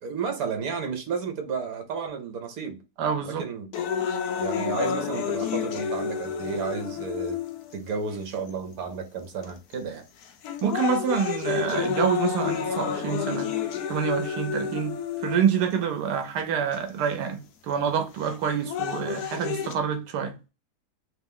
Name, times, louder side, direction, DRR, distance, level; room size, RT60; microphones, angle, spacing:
voice 1, 0.0-2.8 3.2-3.7 4.4-7.4 7.7-10.0, right 5 dB, 70° right, 1.3 m, -32 dB
voice 2, 3.0-3.5 10.6-13.5 13.9-15.0 15.2-20.3, right 7 dB, 90° right, 1.3 m, -27 dB
sound 1, 3.7-7.8 8.5-8.6 9.4-9.7 10.2-15.7 16.7-16.8 18.2-19.7, left 7 dB, 75° left, 1.1 m, -30 dB
3.3 x 3.0 x 3.6 m
omnidirectional pair, 1.7 m